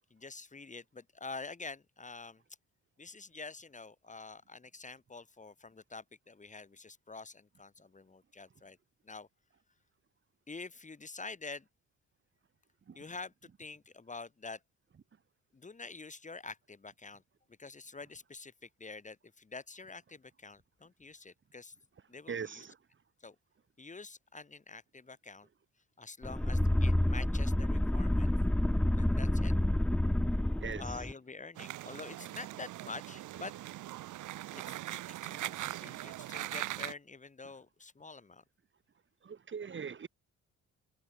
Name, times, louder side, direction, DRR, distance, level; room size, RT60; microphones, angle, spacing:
voice 1, 0.0-2.4 3.0-8.8 9.0-9.3 10.5-11.7 12.9-14.6 15.5-17.2 17.6-21.7 22.1-22.6 23.2-23.4 23.8-25.5 26.0-28.3 28.9-29.5 30.7-33.5 34.5-38.4, left 4 dB, 25° left, 2.7 m, -47 dB
voice 2, 22.3-22.8 30.6-30.8 35.6-35.8 39.2-40.1, right 6 dB, 40° right, 2.2 m, -41 dB
sound 1, 26.2-31.1, left 1 dB, 5° left, 0.6 m, -29 dB
sound 2, 31.5-36.9, right 15 dB, 80° right, 1.5 m, -41 dB
cardioid pair, 90°, 30 cm